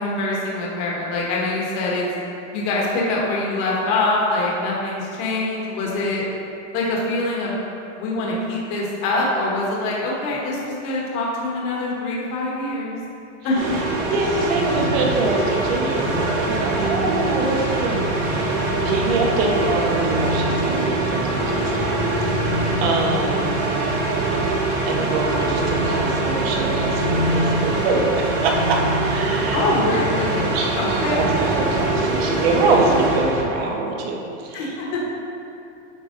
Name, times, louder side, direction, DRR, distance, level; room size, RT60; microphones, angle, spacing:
voice 1, 0.0-2.1 2.5-6.2 6.7-7.6 8.0-13.0 13.4-13.6 22.8-23.0 29.5-31.2 34.5-35.0, left 2 dB, 35° left, -4 dB, 1.3 m, -24 dB
sound 1, 13.5-33.5, right 2 dB, 30° right, 1.7 m, -23 dB
voice 2, 14.1-18.5 18.8-22.4 22.8-23.5 24.6-29.7 30.5-34.8, right 3 dB, 50° right, 0 dB, 1.2 m, -24 dB
9.0 x 4.7 x 3.8 m, 2.7 s
supercardioid pair, 165°, 38 cm